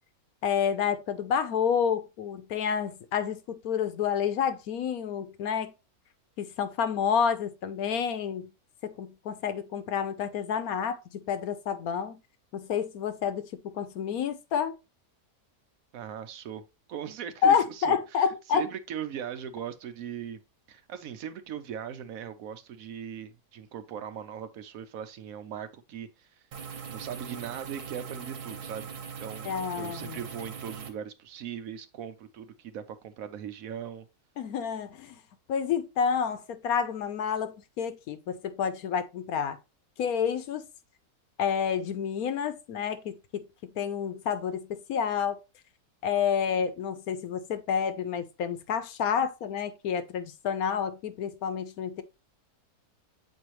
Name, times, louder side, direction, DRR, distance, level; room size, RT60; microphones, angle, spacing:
voice 1, 0.4-5.7 6.4-8.5 8.8-12.2 12.5-14.8 17.4-18.7 29.4-30.2 34.4-35.2 35.5-39.6 40.0-40.7 41.4-45.4 46.0-52.0, left 7 dB, 75° left, 1.2 m, -29 dB
voice 2, 15.9-16.6 16.9-18.0 18.5-20.4 20.7-26.4 26.9-28.9 29.2-34.1, right 8 dB, 70° right, 1.0 m, -39 dB
sound 1, 26.5-30.9, right 6 dB, 85° right, 1.6 m, -40 dB
7.6 x 4.4 x 3.1 m
omnidirectional pair, 1.6 m